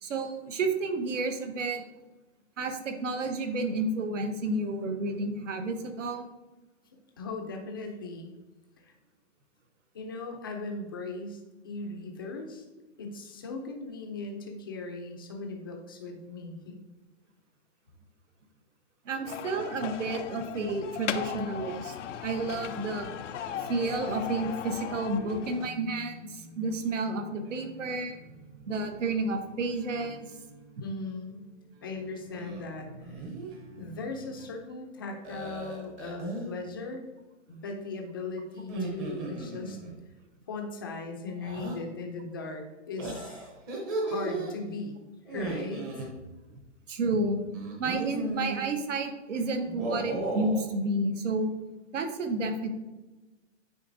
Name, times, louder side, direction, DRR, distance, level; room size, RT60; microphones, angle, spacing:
voice 1, 0.0-1.8 2.6-6.3 19.0-21.9 22.2-23.1 23.7-28.2 28.7-30.2 46.5-46.6 46.9-47.4 47.8-51.5 51.9-52.7, right 2 dB, 80° right, 6 dB, 1.1 m, -31 dB
voice 2, 7.2-8.3 8.8-8.9 9.9-11.4 11.6-12.6 13.0-16.8 30.8-31.4 31.8-33.3 33.8-37.0 37.5-39.8 40.5-43.4 44.0-45.0 45.3-46.1, left 3 dB, 20° left, 3 dB, 0.4 m, -38 dB
sound 1, 19.2-25.7, left 9 dB, 80° left, 0.6 m, -37 dB
sound 2, 20.4-34.5, right 1 dB, 55° right, 2.0 m, -52 dB
sound 3, 32.3-32.6 33.0-33.5 35.2-36.5 38.6-39.9 41.4-41.8 43.0-44.5 45.2-46.1 47.5-48.6 49.6-50.6, right 2 dB, 20° right, 0.7 m, -35 dB
9.1 x 4.0 x 2.6 m, 1.1 s
hypercardioid pair, 160°, 36 cm